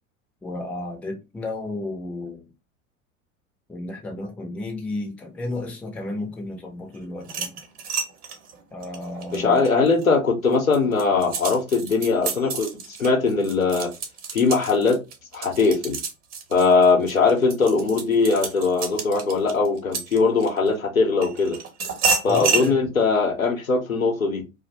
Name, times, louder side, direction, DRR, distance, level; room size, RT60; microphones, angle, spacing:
voice 1, 0.4-2.4 3.7-7.6 8.7-9.7 22.2-22.8, left 2 dB, 5° left, 0.4 m, -33 dB
sound 1, 7.2-10.1 10.5-20.7 21.2-22.7, right 5 dB, 50° right, 0.9 m, -30 dB
voice 2, 9.3-12.7 13.0-13.9 14.3-15.0 15.3-16.0 16.5-21.6 22.2-24.4, left 4 dB, 90° left, 0.6 m, -20 dB
2.5 x 2.1 x 2.9 m
figure-of-eight pair, 80°, 40 cm